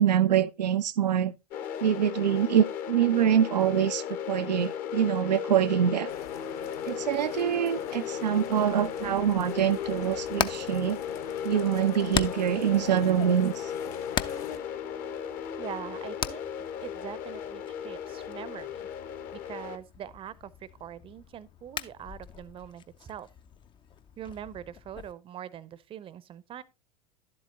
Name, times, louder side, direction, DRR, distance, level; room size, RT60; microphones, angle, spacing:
voice 1, 0.0-1.3 1.8-6.1 6.9-11.0 11.4-13.7, right 9 dB, 80° right, 0.4 m, -25 dB
sound 1, 1.5-19.8, left 8 dB, 40° left, 1.0 m, -36 dB
sound 2, 6.1-14.6, left 8 dB, 60° left, 1.4 m, -45 dB
Hammer, 9.9-25.1, left 8 dB, 25° left, 0.5 m, -40 dB
voice 2, 15.6-16.4 16.8-18.9 19.3-23.3 24.2-26.6, right 10 dB, 25° right, 0.6 m, -42 dB
11.0 x 7.7 x 2.8 m
figure-of-eight pair, 85°, 21 cm